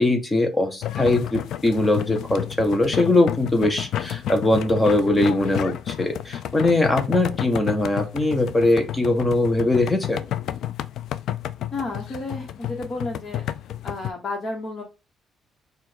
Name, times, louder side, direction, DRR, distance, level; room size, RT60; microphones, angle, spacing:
voice 1, 0.0-10.2, left 2 dB, 20° left, 5 dB, 1.0 m, -21 dB
sound 1, 0.8-14.1, left 11 dB, 75° left, 0.3 m, -31 dB
voice 2, 11.7-13.4 13.8-14.8, left 2 dB, 50° left, 0 dB, 1.4 m, -31 dB
4.4 x 2.6 x 4.3 m, 0.27 s
cardioid pair, 90°, 0 cm